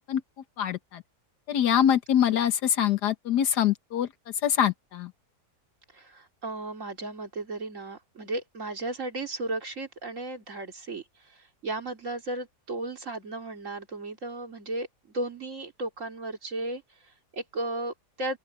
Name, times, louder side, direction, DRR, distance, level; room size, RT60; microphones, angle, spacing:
voice 1, 0.6-1.0 1.5-4.1 4.4-5.1, left 9 dB, 85° left, 1.7 m, -24 dB
voice 2, 5.9-18.4, right 2 dB, 50° right, 3.0 m, -35 dB
open air
omnidirectional pair, 1.7 m